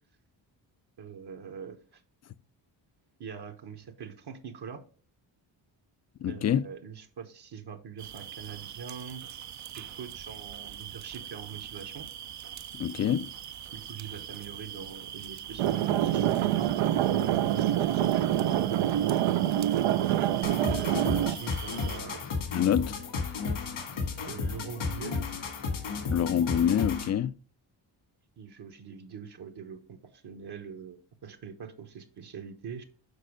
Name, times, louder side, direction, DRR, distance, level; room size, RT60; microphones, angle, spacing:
voice 1, 1.0-2.0 3.2-4.8 6.3-9.2 9.8-12.1 13.7-16.7 17.2-18.2 20.6-22.3 24.3-25.3 28.4-32.8, right 7 dB, 55° right, 1.1 m, -43 dB
voice 2, 6.2-6.7 12.7-13.3 22.5-22.9 26.0-27.3, left 9 dB, 35° left, 0.4 m, -26 dB
sound 1, 8.0-22.0, right 10 dB, 40° right, 0.4 m, -43 dB
sound 2, 15.6-21.4, right 12 dB, 85° right, 0.6 m, -26 dB
sound 3, 20.4-27.2, left 4 dB, 80° left, 1.9 m, -33 dB
6.7 x 4.4 x 5.0 m
cardioid pair, 80°, 47 cm